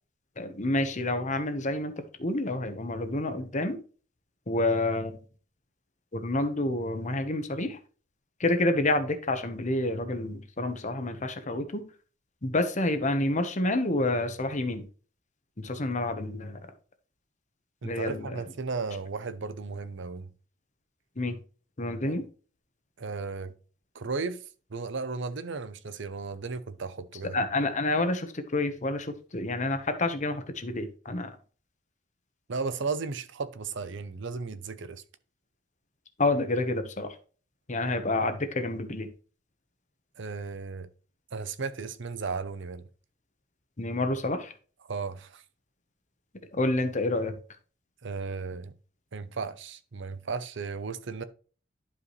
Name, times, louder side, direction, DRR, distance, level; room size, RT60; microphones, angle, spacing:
voice 1, 0.4-3.8 4.5-5.2 6.1-7.8 8.4-11.8 12.4-14.9 15.6-16.6 17.8-18.4 21.2-21.4 21.8-22.3 27.3-31.3 36.2-37.1 37.7-39.1 43.8-44.5 46.5-47.3, left 2 dB, 40° left, 1.1 m, -28 dB
voice 2, 17.8-20.3 22.0-22.2 23.0-23.5 23.9-24.4 24.7-27.4 32.5-35.0 40.2-40.9 41.3-42.8 44.9-45.4 48.0-48.7 49.1-51.2, right 4 dB, 65° right, 0.7 m, -35 dB
11.0 x 4.9 x 3.2 m
head